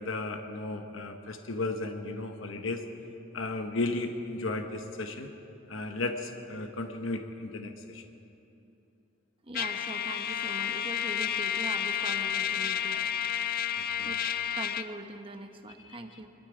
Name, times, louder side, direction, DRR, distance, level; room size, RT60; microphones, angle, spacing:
voice 1, 0.0-2.8 3.3-5.3 5.7-8.0 14.0-14.1 15.8-16.0, left 2 dB, 80° left, 5 dB, 1.0 m, -34 dB
voice 2, 9.4-13.2 14.0-16.3, right 2 dB, 25° right, 5 dB, 0.9 m, -42 dB
Trumpet, 9.5-14.9, left 9 dB, 50° left, 0.5 m, -31 dB
23.0 x 12.5 x 4.9 m, 2.8 s
head